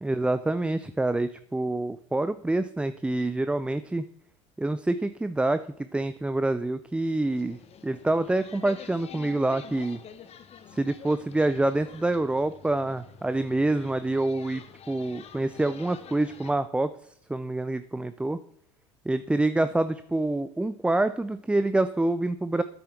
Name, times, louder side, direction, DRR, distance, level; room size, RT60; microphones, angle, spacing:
voice 1, 0.0-4.0 4.6-10.0 10.7-16.9 17.3-18.4 19.1-22.6, right 2 dB, 5° right, 12 dB, 0.4 m, -27 dB
sound 1, 7.2-16.5, left 8 dB, 45° left, 1.1 m, -47 dB
9.5 x 7.8 x 5.9 m, 0.68 s
hypercardioid pair, 70°, 15 cm